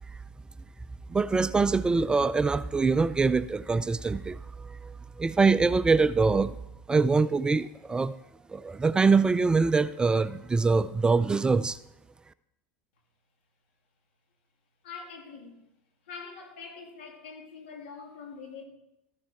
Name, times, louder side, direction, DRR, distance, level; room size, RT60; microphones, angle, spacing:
voice 1, 1.1-6.6 6.9-8.2 8.5-11.8, right 4 dB, 15° right, 0.4 m, -24 dB
voice 2, 14.8-15.6 16.1-18.6, left 5 dB, 85° left, 2.8 m, -44 dB
13.5 x 7.4 x 4.5 m
supercardioid pair, 115°, 6 cm